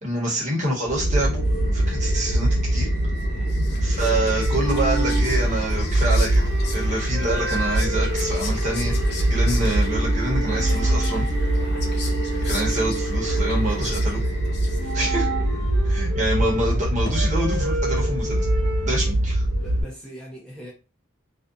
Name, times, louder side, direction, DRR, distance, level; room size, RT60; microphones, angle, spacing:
voice 1, 0.0-2.9 3.8-6.4 6.7-8.9 9.3-11.2 12.4-14.2 14.9-15.2 15.9-18.4 18.8-19.4, right 1 dB, 40° right, 1.1 m, -26 dB
sound 1, 0.8-19.8, right 1 dB, 70° left, 1.1 m, -23 dB
Whispering, 3.2-15.1, left 5 dB, 55° left, 0.5 m, -40 dB
voice 2, 3.3-3.6 12.7-12.9 14.7-14.9 19.0-19.1 19.5-20.7, equal, 5° left, 0.6 m, -42 dB
sound 2, 4.0-14.1 14.8-19.1, right 1 dB, 70° right, 0.7 m, -33 dB
2.6 x 2.3 x 2.4 m
head